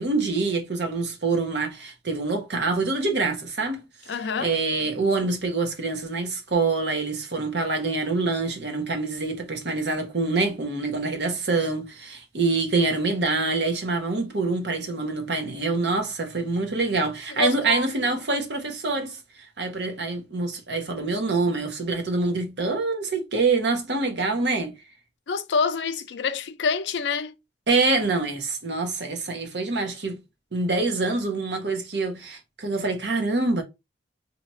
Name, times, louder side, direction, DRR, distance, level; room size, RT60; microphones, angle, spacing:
voice 1, 0.0-3.8 4.4-19.2 19.6-24.7 27.7-30.2 30.5-33.6, right 3 dB, 65° right, 1.0 m, -25 dB
voice 2, 4.1-4.6 17.3-17.9 25.3-27.3, left 4 dB, 75° left, 0.5 m, -27 dB
2.9 x 2.5 x 4.1 m
head